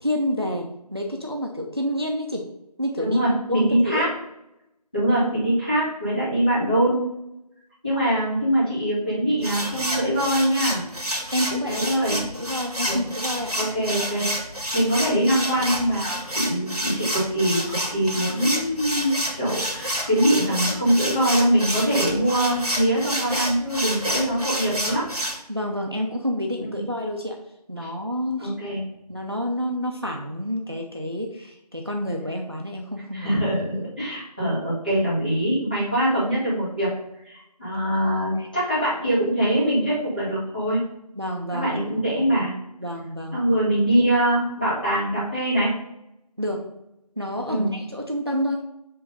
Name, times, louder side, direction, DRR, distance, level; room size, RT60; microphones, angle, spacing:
voice 1, 0.0-2.5 2.8-3.2 3.5-4.1 11.3-11.9 12.3-13.6 25.5-27.4 27.7-28.5 29.1-33.5 37.9-38.1 38.4-38.5 41.1-41.8 42.8-43.4 46.4-46.6 47.2-48.6, equal, 40° right, 1 dB, 0.7 m, -28 dB
voice 2, 3.0-4.1 4.9-7.0 7.8-10.8 11.7-12.2 12.9-13.1 13.6-14.3 14.7-25.0 26.7-26.8 27.8-27.9 28.4-28.8 33.1-36.9 37.2-40.8 41.5-42.5 43.3-45.7 47.5-47.7, right 1 dB, 15° left, -12 dB, 1.8 m, -23 dB
sound 1, 9.4-25.4, equal, 65° right, 1.9 m, -29 dB
7.6 x 3.3 x 5.3 m, 0.85 s
figure-of-eight pair, 175°, 21 cm